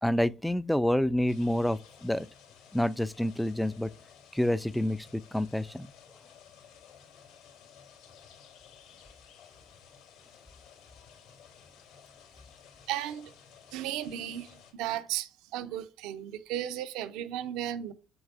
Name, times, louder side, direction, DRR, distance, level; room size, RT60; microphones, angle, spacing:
voice 1, 0.0-2.3 2.7-3.9 4.3-5.9, left 1 dB, 5° left, 0.3 m, -28 dB
sound 1, 1.3-14.7, left 7 dB, 75° left, 2.9 m, -55 dB
voice 2, 12.9-13.3 13.7-17.9, right 12 dB, 75° right, 0.6 m, -35 dB
7.9 x 7.0 x 2.5 m
hypercardioid pair, 70°, 0 cm